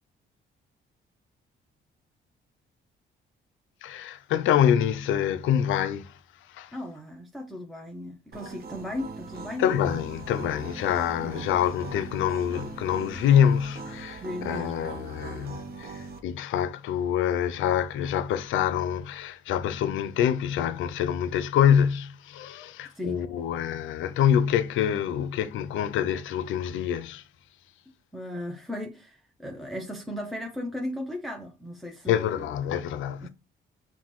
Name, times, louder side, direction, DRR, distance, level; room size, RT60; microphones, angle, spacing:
voice 1, 3.8-6.1 6.6-6.7 9.6-15.9 16.2-27.2 32.1-33.3, left 9 dB, 80° left, 0.4 m, -26 dB
voice 2, 6.7-9.7 11.2-11.5 14.1-14.9 22.9-23.3 28.1-32.5 33.2-33.3, left 1 dB, ahead, 0.6 m, -36 dB
sound 1, 8.3-16.2, right 4 dB, 50° right, 0.7 m, -41 dB
5.6 x 2.2 x 3.0 m
cardioid pair, 90°, 20 cm